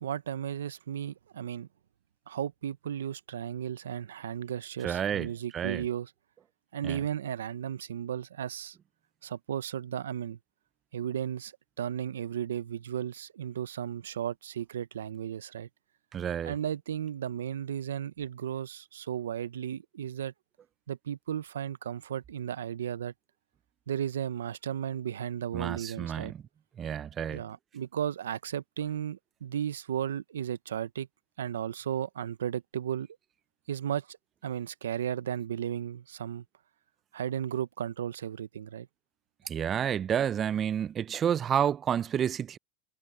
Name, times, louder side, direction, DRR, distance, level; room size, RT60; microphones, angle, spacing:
voice 1, 0.0-1.7 2.3-6.1 6.7-8.8 9.2-10.4 10.9-11.5 11.8-15.7 16.4-20.3 20.9-23.1 23.9-26.3 27.3-31.1 31.4-33.1 33.7-34.2 34.4-36.4 37.1-38.9, right 9 dB, 90° right, 0.7 m, -34 dB
voice 2, 4.8-5.3 5.5-5.8 6.8-7.0 16.1-16.5 25.5-26.4 26.8-27.4 39.5-42.6, right 9 dB, 35° right, 0.5 m, -30 dB
hypercardioid pair, 100°, 0 cm